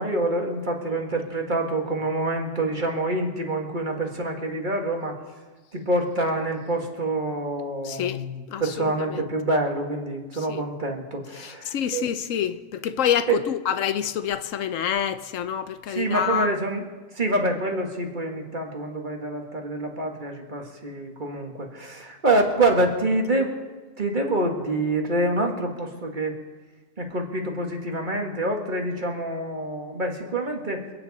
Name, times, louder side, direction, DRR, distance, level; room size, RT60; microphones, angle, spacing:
voice 1, 0.0-5.1 5.7-8.2 8.6-12.0 13.3-13.4 15.9-16.9 17.2-23.5 24.0-26.3 27.0-30.8, right 2 dB, 40° right, 1.9 m, -26 dB
voice 2, 7.8-9.3 10.3-10.6 11.3-16.6, left 9 dB, 85° left, 1.1 m, -27 dB
27.5 x 9.5 x 4.2 m
omnidirectional pair, 1.3 m